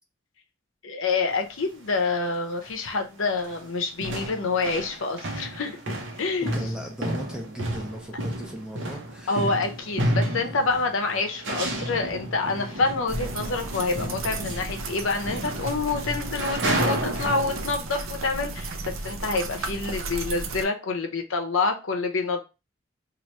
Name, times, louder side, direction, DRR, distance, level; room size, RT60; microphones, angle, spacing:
voice 1, 0.8-6.5 9.3-22.4, left 3 dB, 75° left, 0.7 m, -27 dB
sound 1, 1.3-1.5 2.3-2.4 2.6-3.0 3.3-17.7, right 1 dB, 60° right, 0.9 m, -31 dB
voice 2, 6.5-9.5, equal, 5° right, 0.6 m, -37 dB
sound 2, 13.1-20.6, right 3 dB, 85° right, 0.5 m, -35 dB
3.0 x 2.5 x 4.3 m
head